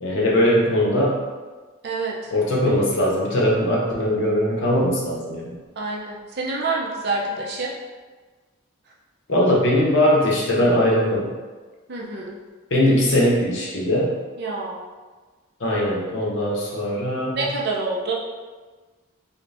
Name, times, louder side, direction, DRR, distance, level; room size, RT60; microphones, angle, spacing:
voice 1, 0.0-1.2 2.3-5.5 9.3-11.3 12.7-14.2 15.6-17.5, left 1 dB, 60° left, -3 dB, 0.8 m, -20 dB
voice 2, 1.8-2.3 5.8-7.7 11.9-12.4 14.4-14.8 17.4-18.1, right 3 dB, 50° right, -3 dB, 0.5 m, -27 dB
4.9 x 2.1 x 2.6 m, 1.4 s
head